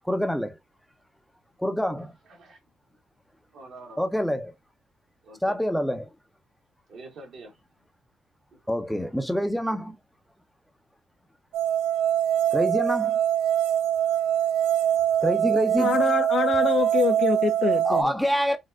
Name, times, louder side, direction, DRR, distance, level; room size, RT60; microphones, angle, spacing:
voice 1, 0.0-0.6 1.6-2.1 4.0-4.5 5.4-6.1 8.7-9.9 12.5-13.2 15.2-16.0 17.8-18.6, equal, 5° left, 0.6 m, -26 dB
voice 2, 3.5-4.0 5.2-5.6 6.9-7.6 8.5-8.7, right 2 dB, 65° right, 1.5 m, -45 dB
sound 1, 11.5-18.0, right 10 dB, 85° right, 0.3 m, -23 dB
voice 3, 15.8-18.1, left 6 dB, 55° left, 0.4 m, -25 dB
4.1 x 2.1 x 2.3 m
supercardioid pair, 70°, 0 cm